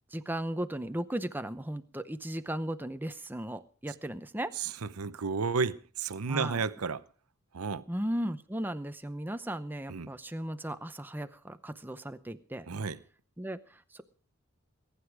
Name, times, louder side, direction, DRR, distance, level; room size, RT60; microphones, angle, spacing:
voice 1, 0.1-4.5 6.3-6.6 7.9-12.7 13.4-14.0, right 1 dB, 10° right, 0.7 m, -36 dB
voice 2, 4.5-7.0 7.5-7.8 9.9-10.1 12.7-13.0, right 5 dB, 90° right, 0.7 m, -32 dB
21.5 x 9.9 x 4.8 m
head